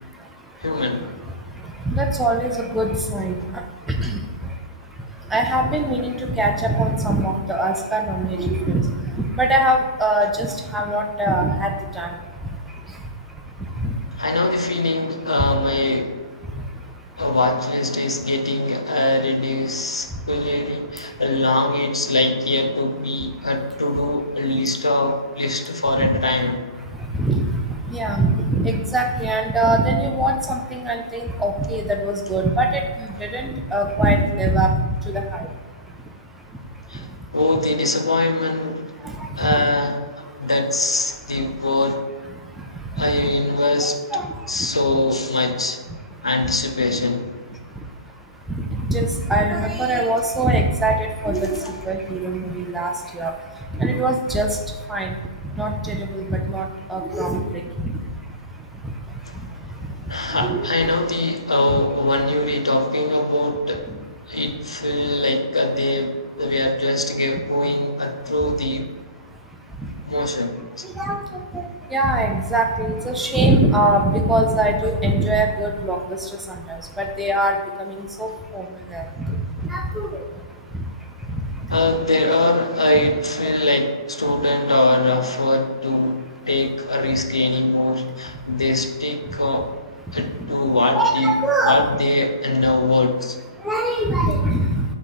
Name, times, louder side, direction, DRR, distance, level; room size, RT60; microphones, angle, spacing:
voice 1, 0.6-1.1 14.2-16.2 17.2-26.6 36.9-38.9 39.4-39.9 40.4-42.0 43.0-44.0 44.5-45.8 46.2-47.3 59.3-59.4 60.1-63.9 64.3-68.9 70.0-70.9 81.7-89.7 90.1-91.3 91.6-93.4, left 2 dB, 90° left, 6 dB, 0.4 m, -21 dB
voice 2, 1.9-3.3 3.9-4.2 5.3-8.9 9.2-10.5 10.7-12.1 13.8-13.9 26.0-26.1 27.2-27.4 27.9-32.8 33.2-35.4 39.4-39.6 43.0-43.1 44.1-44.3 48.9-51.6 51.9-52.9 53.2-53.3 53.8-54.6 54.9-55.1 55.6-57.4 57.8-57.9 60.4-60.9 71.0-71.2 71.5-71.6 71.9-76.0 77.0-78.3 78.5-78.6 78.9-79.4 79.7-80.1 82.9-83.0 83.4-83.5 90.9-91.8 93.6-94.8, right 1 dB, 5° right, 2 dB, 0.4 m, -22 dB
3.4 x 3.0 x 4.1 m, 1.4 s
figure-of-eight pair, 125°, 3 cm